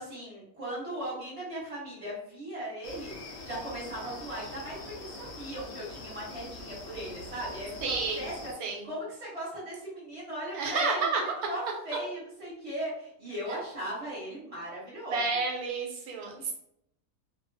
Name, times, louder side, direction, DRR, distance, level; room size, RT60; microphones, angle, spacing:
voice 1, 0.0-8.3 8.6-11.1 11.5-15.4 16.4-16.5, right 1 dB, 25° right, -7 dB, 1.1 m, -38 dB
sound 1, 2.8-8.5, left 2 dB, 60° left, 0.7 m, -44 dB
voice 2, 7.8-8.3 8.6-8.9 10.5-11.2 15.1-16.5, right 4 dB, 85° right, 1 dB, 1.1 m, -30 dB
2.4 x 2.1 x 2.6 m, 0.76 s
omnidirectional pair, 1.5 m